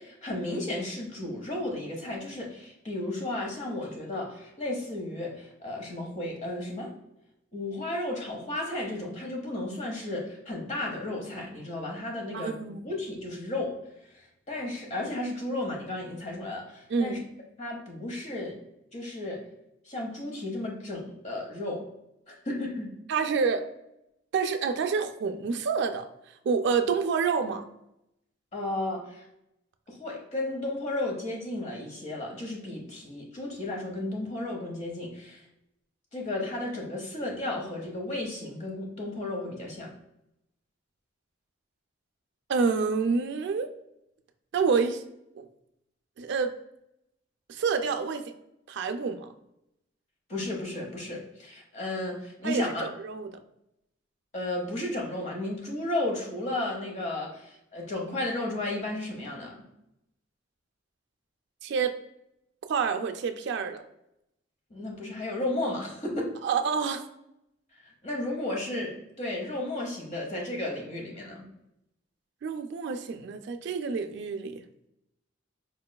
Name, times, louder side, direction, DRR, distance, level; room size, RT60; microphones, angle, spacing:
voice 1, 0.0-6.9 7.5-13.7 14.5-17.2 17.6-18.6 18.9-19.4 19.8-21.9 22.3-22.9 28.5-29.2 29.9-35.4 36.1-39.9 50.3-52.9 54.3-59.6 64.7-66.3 68.0-71.5, left 1 dB, 40° left, 0 dB, 0.9 m, -33 dB
voice 2, 12.3-12.8 16.9-17.2 23.1-23.7 24.3-26.1 26.4-27.7 42.5-43.7 44.5-45.0 45.4-45.5 46.2-46.6 47.5-48.3 48.7-49.3 52.4-53.3 61.6-62.0 62.7-63.8 66.4-67.1 72.4-74.6, right 5 dB, 65° right, 7 dB, 0.3 m, -28 dB
4.4 x 3.0 x 2.2 m, 0.83 s
head